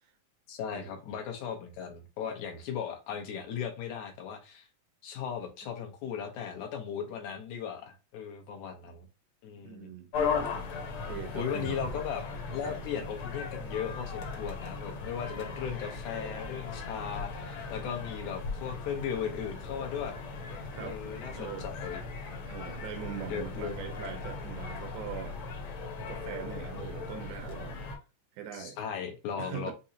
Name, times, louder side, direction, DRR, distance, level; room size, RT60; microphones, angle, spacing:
voice 1, 0.5-4.7 5.0-9.1 9.4-9.9 11.3-12.2 12.5-20.2 20.8-22.0 23.3-23.9 28.5-29.7, left 7 dB, 80° left, 2.4 m, -37 dB
voice 2, 9.6-10.1 10.9-11.8 12.6-12.8 20.7-21.0 21.4-21.7 22.5-25.4 26.1-27.8 28.4-28.8 29.4-29.7, right 10 dB, 90° right, 2.3 m, -41 dB
sound 1, 10.1-28.0, left 4 dB, 55° left, 1.6 m, -38 dB
6.1 x 2.8 x 2.8 m
omnidirectional pair, 3.3 m